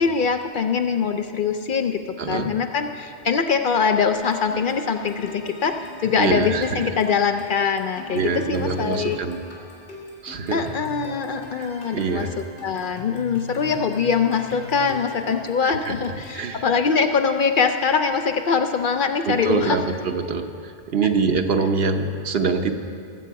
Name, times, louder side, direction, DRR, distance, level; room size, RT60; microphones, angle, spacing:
voice 1, 0.0-2.0 2.3-5.7 6.0-9.2 10.5-19.8 21.0-21.1, left 6 dB, 60° left, 6 dB, 0.6 m, -23 dB
voice 2, 2.2-2.5 6.2-6.8 8.1-9.4 10.2-10.7 11.5-12.3 15.6-16.0 16.3-16.7 19.3-20.5 20.9-22.7, right 4 dB, 65° right, 6 dB, 1.0 m, -24 dB
sound 1, 4.1-16.4, left 2 dB, 80° left, 3.0 m, -41 dB
19.5 x 8.0 x 4.7 m, 2.5 s
omnidirectional pair, 1.1 m